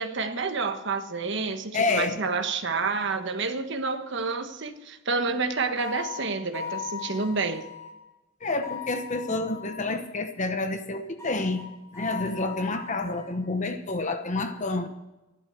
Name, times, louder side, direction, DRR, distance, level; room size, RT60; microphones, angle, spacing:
voice 1, 0.0-7.7, right 4 dB, 60° right, 7 dB, 1.3 m, -29 dB
voice 2, 1.7-2.2 8.4-14.9, left 3 dB, 35° left, 8 dB, 0.9 m, -29 dB
sound 1, 5.8-7.9 8.6-9.9 11.2-13.4, left 8 dB, 15° left, 5.9 m, -39 dB
13.5 x 11.5 x 6.9 m, 1.0 s
head